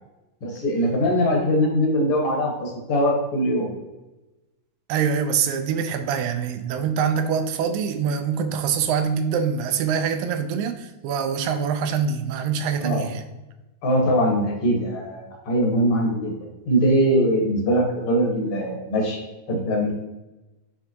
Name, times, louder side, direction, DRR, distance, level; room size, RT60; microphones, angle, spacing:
voice 1, 0.4-3.7 12.8-13.0 13.8-16.3 16.7-19.2 19.5-19.9, equal, 50° left, -1 dB, 1.8 m, -21 dB
voice 2, 4.9-13.2, right 7 dB, 80° right, 7 dB, 2.2 m, -24 dB
9.7 x 3.5 x 2.8 m, 1.1 s
omnidirectional pair, 4.2 m